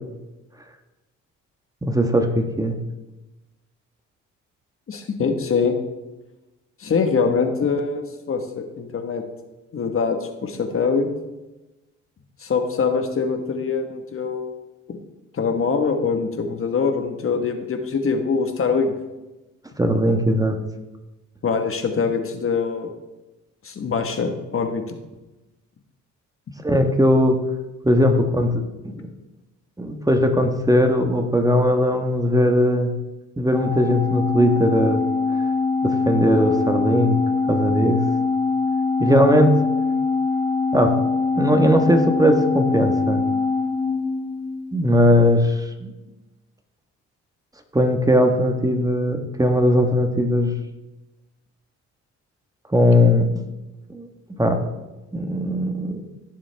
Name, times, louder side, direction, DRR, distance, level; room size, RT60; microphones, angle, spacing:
voice 1, 1.8-2.8 19.8-20.6 26.6-27.4 27.8-28.6 28.9-29.1 29.8-32.9 33.4-35.0 35.8-37.2 37.5-38.0 39.0-39.6 40.7-41.0 41.4-43.2 44.7-45.9 47.7-50.5 52.7-53.3 53.9-54.1 54.4-54.6 55.1-56.0, equal, 10° right, 4 dB, 1.3 m, -19 dB
voice 2, 4.9-5.8 6.8-9.2 9.7-11.1 12.4-14.6 14.9-15.0 15.3-18.9 21.4-22.9 23.6-25.0, left 5 dB, 45° left, 6 dB, 1.4 m, -23 dB
Organ, 33.5-44.8, left 4 dB, 5° left, 2.3 m, -23 dB
16.5 x 7.4 x 3.5 m, 1.1 s
cardioid pair, 90°, 30 cm